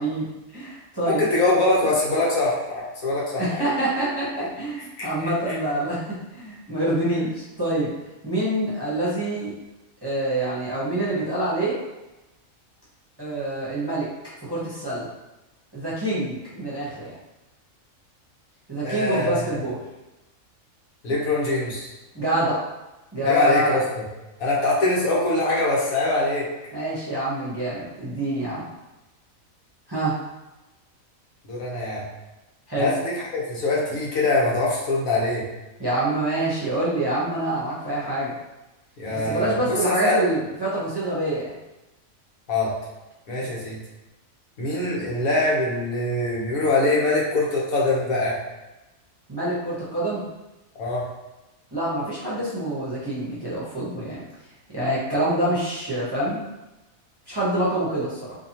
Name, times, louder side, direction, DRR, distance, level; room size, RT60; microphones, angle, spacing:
voice 1, 0.0-1.2 3.4-7.9 8.2-9.5 10.0-11.8 13.2-14.1 14.4-15.1 15.7-17.1 18.7-19.8 22.1-22.6 23.1-23.8 26.7-28.6 29.9-30.2 32.7-32.9 35.8-38.4 39.1-41.5 49.3-50.3 51.7-54.2 54.7-56.4 57.3-58.4, right 1 dB, 20° right, -9 dB, 0.7 m, -26 dB
voice 2, 1.0-3.6 5.0-5.1 18.8-19.6 21.0-21.9 23.2-23.8 24.4-26.5 31.4-32.0 32.8-35.4 39.0-40.2 42.5-42.7 43.3-43.8 44.6-48.4 50.8-51.0, left 2 dB, 80° left, -5 dB, 1.4 m, -23 dB
4.2 x 2.9 x 2.8 m, 1.0 s
omnidirectional pair, 1.5 m